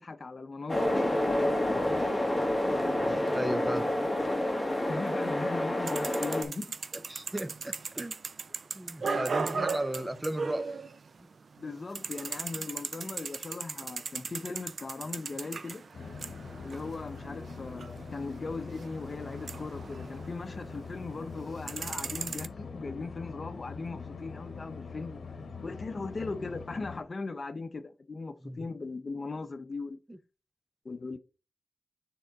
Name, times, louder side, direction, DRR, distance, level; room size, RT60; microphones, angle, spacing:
voice 1, 0.0-2.0 4.9-6.8 9.0-10.1 11.6-15.8 16.6-25.2 25.6-30.0 30.8-31.2, left 3 dB, 45° left, 0.7 m, -39 dB
sound 1, 0.7-6.4, left 1 dB, 15° left, 1.5 m, -28 dB
voice 2, 3.0-3.9 6.9-8.1 8.7-10.7 28.4-28.6 30.1-30.2, right 1 dB, 15° right, 0.6 m, -36 dB
sound 2, 5.9-11.3 11.6-20.9 21.3-22.5, right 4 dB, 65° right, 0.4 m, -38 dB
sound 3, 15.9-27.0, left 4 dB, 75° left, 0.9 m, -43 dB
6.9 x 3.7 x 4.0 m
wide cardioid pair, 85°, 0 cm